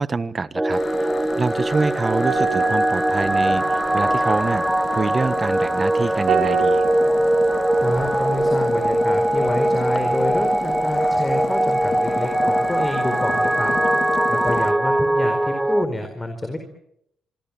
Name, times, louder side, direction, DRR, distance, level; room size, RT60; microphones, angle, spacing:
voice 1, 0.0-6.9, right 4 dB, 30° right, 15 dB, 1.2 m, -26 dB
sound 1, 0.5-15.8, right 1 dB, 10° right, 1.8 m, -21 dB
sound 2, 0.7-14.7, left 5 dB, 40° left, 1.1 m, -30 dB
sound 3, 2.2-10.9 11.2-11.4, right 6 dB, 75° right, 5.1 m, -31 dB
voice 2, 7.8-13.9 14.3-16.6, left 1 dB, 15° left, 6 dB, 4.4 m, -28 dB
25.0 x 24.5 x 7.3 m, 0.74 s
cardioid pair, 90°, 0 cm